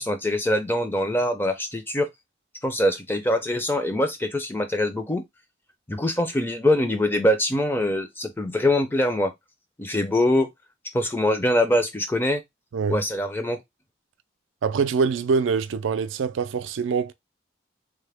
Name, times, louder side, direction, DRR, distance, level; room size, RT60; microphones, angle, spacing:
voice 1, 0.0-2.1 2.6-5.2 5.9-9.3 9.8-10.5 10.9-12.4 12.9-13.6, left 1 dB, 10° left, 0.5 m, -23 dB
voice 2, 14.6-17.1, right 5 dB, 90° right, 0.4 m, -24 dB
3.3 x 2.1 x 3.4 m
head